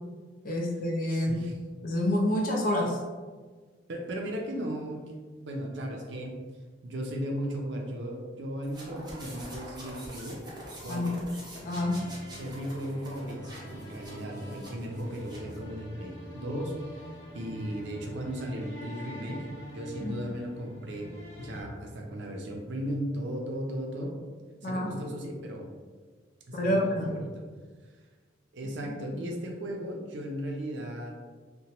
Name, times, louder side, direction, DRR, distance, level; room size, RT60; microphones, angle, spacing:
voice 1, 0.4-1.4 1.8-3.0 10.9-11.3 11.6-12.0 20.0-20.2 24.6-24.9 26.5-27.2, left 1 dB, 45° left, 0 dB, 0.5 m, -28 dB
voice 2, 1.1-1.6 3.9-6.4 6.8-11.2 12.4-13.4 13.7-24.1 24.6-25.7 26.5-27.4 28.5-31.3, equal, 65° right, 1 dB, 0.5 m, -36 dB
sound 1, 8.6-15.6, right 1 dB, 20° right, 0.7 m, -45 dB
sound 2, 11.6-21.6, equal, 15° left, 0.8 m, -45 dB
2.9 x 2.2 x 2.8 m, 1.5 s
head